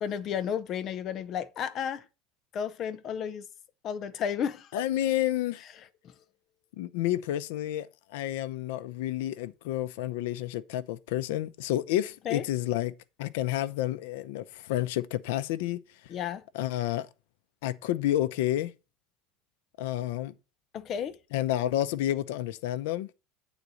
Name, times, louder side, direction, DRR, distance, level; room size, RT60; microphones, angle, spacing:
voice 1, 0.0-2.1 2.5-3.5 3.8-4.7 5.8-6.1 12.2-12.4 16.1-16.4 20.7-21.2, left 8 dB, 30° left, 0.5 m, -33 dB
voice 2, 4.7-5.6 6.8-7.9 8.1-12.9 13.2-15.8 16.5-17.1 17.6-18.7 19.8-20.3 21.3-23.1, left 13 dB, 75° left, 0.6 m, -30 dB
8.3 x 4.0 x 6.2 m
cardioid pair, 175°, 0 cm